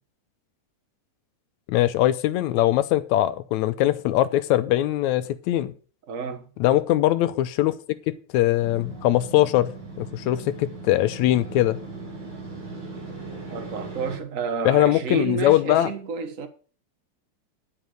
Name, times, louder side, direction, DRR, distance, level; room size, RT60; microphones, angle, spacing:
voice 1, 1.7-5.7 6.6-7.8 8.1-11.8 14.7-15.9, left 14 dB, 80° left, 2.0 m, -21 dB
voice 2, 6.1-6.5 13.5-16.5, right 5 dB, 65° right, 0.7 m, -30 dB
Motorcycle, 8.6-14.2, right 3 dB, 85° right, 5.5 m, -38 dB
11.0 x 5.2 x 7.6 m
omnidirectional pair, 3.4 m